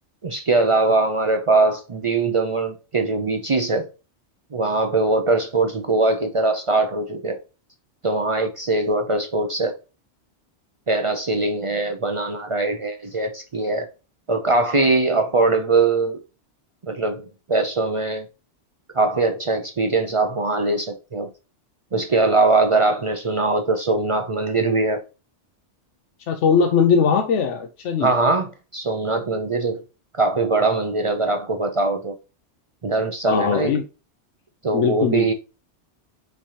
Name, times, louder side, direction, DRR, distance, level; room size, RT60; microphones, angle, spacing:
voice 1, 0.2-3.9 4.5-7.4 8.0-9.7 10.9-13.9 14.3-16.2 16.8-18.3 18.9-21.3 21.9-25.0 28.0-29.8 30.1-32.1 32.8-33.7 34.6-35.3, right 3 dB, 50° right, 0.4 m, -21 dB
voice 2, 26.3-28.1 33.3-33.8 34.7-35.3, left 6 dB, 80° left, 1.0 m, -20 dB
5.8 x 3.3 x 2.7 m
omnidirectional pair, 1.2 m